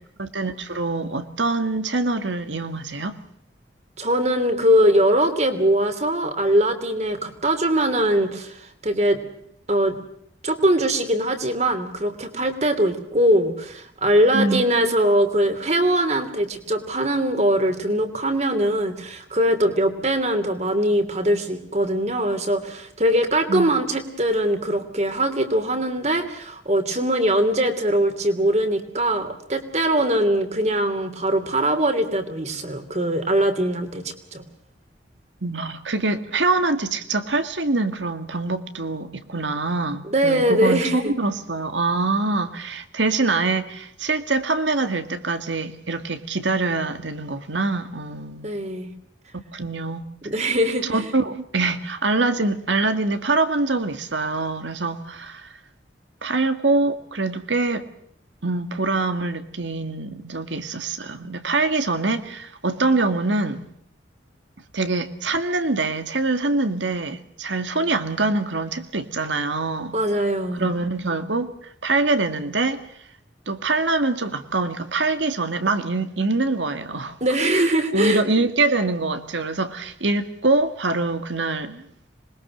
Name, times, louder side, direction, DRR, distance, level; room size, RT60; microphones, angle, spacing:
voice 1, 0.2-3.2 14.3-14.6 23.5-23.8 35.4-48.5 49.5-50.0 50.8-55.6 56.2-57.8 58.4-63.6 64.7-69.9 70.5-72.8 73.5-77.2 77.9-81.8, right 3 dB, 85° right, 2.0 m, -24 dB
voice 2, 4.0-9.2 9.7-10.0 10.4-34.4 40.0-41.1 48.4-48.9 50.2-51.1 69.9-70.7 77.2-78.2, right 1 dB, 35° right, 3.0 m, -21 dB
26.5 x 21.5 x 6.4 m
head